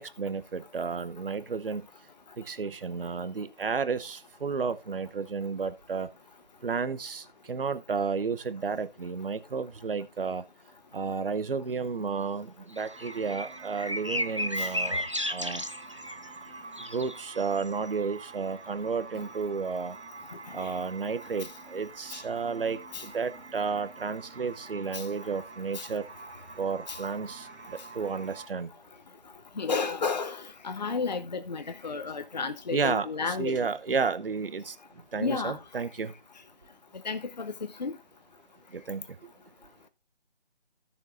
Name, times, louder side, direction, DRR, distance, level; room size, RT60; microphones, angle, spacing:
voice 1, 0.0-1.9 2.4-6.1 6.6-10.4 10.9-15.6 16.9-20.0 20.5-26.1 26.6-28.7 32.7-34.8 35.1-36.1 38.7-39.0, right 5 dB, 55° right, 0.9 m, -32 dB
sound 1, 12.7-28.5, right 4 dB, 85° right, 1.1 m, -47 dB
sound 2, 12.8-16.4 16.8-17.7, left 1 dB, 30° right, 0.4 m, -33 dB
voice 2, 29.6-33.7 35.2-35.6 37.0-37.5 37.8-37.9, left 4 dB, 40° left, 0.8 m, -32 dB
16.0 x 6.9 x 2.6 m
figure-of-eight pair, 165°, 33 cm